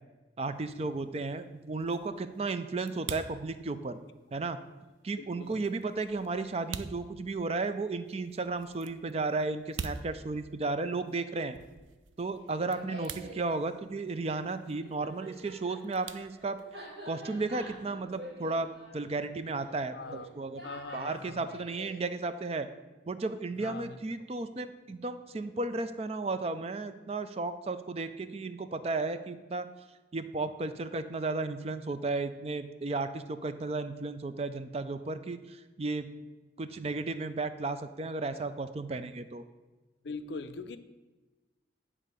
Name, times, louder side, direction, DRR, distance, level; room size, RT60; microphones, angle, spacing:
voice 1, 0.4-4.0 4.3-4.6 5.0-11.6 12.2-16.6 17.1-20.6 20.9-22.7 23.1-29.7 30.1-36.1 36.6-39.4, right 3 dB, 30° right, 0.4 m, -34 dB
sound 1, 0.5-17.0, right 6 dB, 90° right, 0.5 m, -47 dB
voice 2, 5.2-5.6 19.9-20.3 20.6-21.6 23.6-24.0 40.0-40.8, left 3 dB, 65° left, 0.5 m, -42 dB
Laughter, 12.4-13.4 14.7-22.0, equal, 70° right, 2.7 m, -47 dB
9.9 x 3.7 x 6.7 m
head